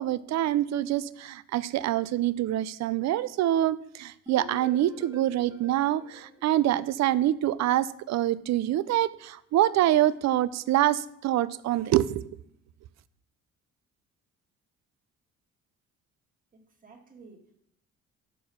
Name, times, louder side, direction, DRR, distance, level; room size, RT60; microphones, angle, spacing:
voice 1, 0.0-12.2, right 13 dB, 65° right, 17 dB, 0.4 m, -25 dB
sound 1, 4.3-7.2, left 1 dB, 10° right, 1.1 m, -47 dB
voice 2, 16.5-17.7, right 4 dB, 25° right, 2 dB, 1.6 m, -53 dB
6.8 x 4.7 x 5.5 m, 0.70 s
cardioid pair, 90°, 30 cm